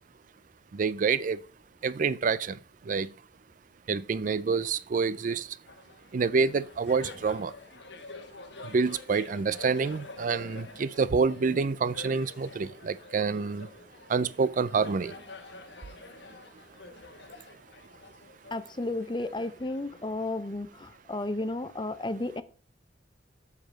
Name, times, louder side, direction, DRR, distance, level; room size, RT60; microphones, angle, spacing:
voice 1, 0.7-1.4 1.8-2.6 2.9-3.1 3.9-5.5 6.1-7.5 8.7-13.7 14.1-15.1, right 5 dB, 50° right, 0.4 m, -27 dB
Laughter, 5.7-20.7, left 3 dB, 80° left, 1.2 m, -48 dB
voice 2, 18.5-22.4, left 2 dB, 25° left, 0.7 m, -33 dB
7.8 x 6.8 x 5.2 m
head